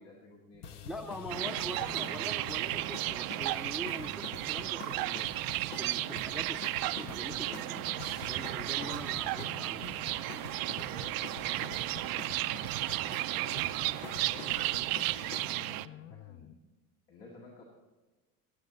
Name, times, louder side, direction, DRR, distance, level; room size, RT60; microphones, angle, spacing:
voice 1, 0.0-0.8 1.1-1.6 11.4-12.4 13.3-16.6 17.1-17.7, left 2 dB, 70° left, -3 dB, 2.2 m, -53 dB
sound 1, 0.5-16.5, left 10 dB, 35° left, 0.6 m, -52 dB
sound 2, 0.6-15.4, left 6 dB, 90° left, 0.8 m, -48 dB
voice 2, 0.8-5.3 5.8-7.8 8.2-10.0, equal, ahead, 8 dB, 0.7 m, -43 dB
sound 3, 1.3-15.9, right 17 dB, 50° right, 0.5 m, -34 dB
18.0 x 7.2 x 4.0 m, 1.2 s
hypercardioid pair, 75°, 44 cm